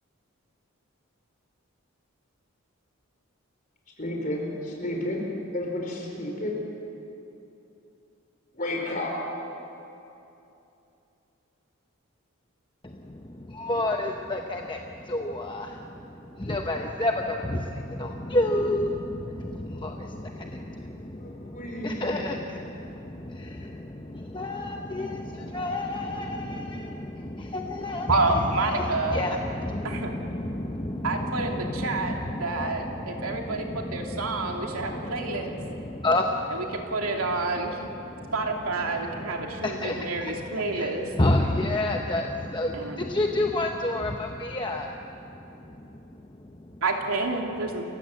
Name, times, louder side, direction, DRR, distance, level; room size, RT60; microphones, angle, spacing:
voice 1, 4.0-5.3 5.5-6.6 8.5-9.1 21.1-22.4, left 1 dB, 40° left, 0 dB, 4.7 m, -32 dB
voice 2, 12.8-46.8, left 1 dB, 20° left, 2 dB, 0.9 m, -31 dB
voice 3, 28.1-29.2 29.8-30.1 31.0-35.5 36.7-37.8 38.3-41.1 42.7-43.0 46.8-47.8, right 3 dB, 85° right, 1 dB, 2.8 m, -28 dB
28.5 x 15.5 x 7.9 m, 2.9 s
head